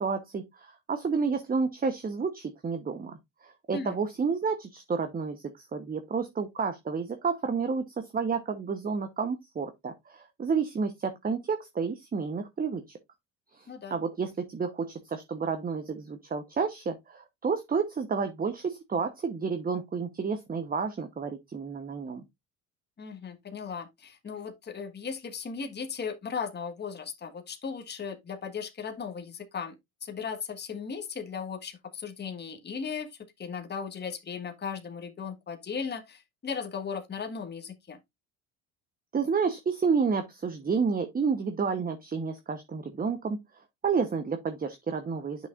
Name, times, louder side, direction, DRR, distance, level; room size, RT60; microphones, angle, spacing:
voice 1, 0.0-13.0 13.5-13.6 13.9-22.2 39.1-43.4 43.8-45.5, right 5 dB, 25° right, 1.0 m, -30 dB
voice 2, 13.7-14.0 23.0-29.8 30.0-38.0, left 6 dB, 25° left, 1.5 m, -37 dB
8.3 x 6.1 x 2.4 m
supercardioid pair, 85°, 38 cm